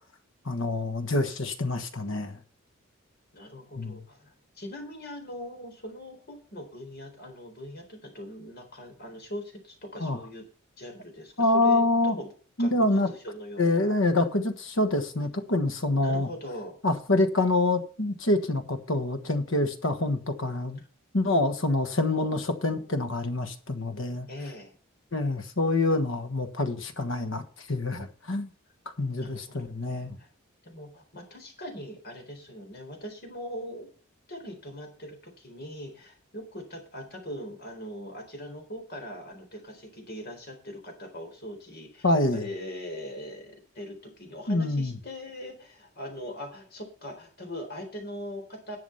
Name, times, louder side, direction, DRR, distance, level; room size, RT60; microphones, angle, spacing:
voice 1, 0.4-2.4 3.8-4.0 10.0-10.2 11.4-12.1 12.6-13.1 13.6-16.3 16.8-20.8 21.1-24.3 25.1-27.4 27.7-28.5 29.0-30.2 42.0-42.5 44.5-44.9, left 2 dB, 65° left, 1.4 m, -26 dB
voice 2, 3.3-10.5 10.8-12.3 12.6-12.7 13.1-13.9 16.0-16.8 18.3-18.6 22.1-22.5 24.3-24.8 29.2-30.3 30.6-33.9 34.3-48.8, equal, 50° left, 3.9 m, -41 dB
11.0 x 7.2 x 5.6 m
head